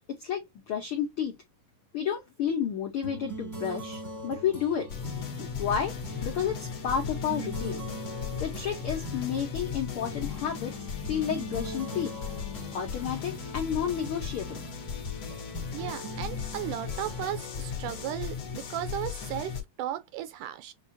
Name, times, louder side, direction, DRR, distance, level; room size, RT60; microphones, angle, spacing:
voice 1, 0.1-1.4 1.9-4.9 5.4-7.8 8.4-12.2 12.7-14.6, left 8 dB, 80° left, 1.2 m, -31 dB
sound 1, 3.0-18.9, equal, 10° right, 0.8 m, -42 dB
sound 2, 4.9-19.6, left 6 dB, 55° left, 1.6 m, -37 dB
voice 2, 15.7-20.7, right 12 dB, 80° right, 1.9 m, -35 dB
7.2 x 2.4 x 2.6 m
omnidirectional pair, 3.9 m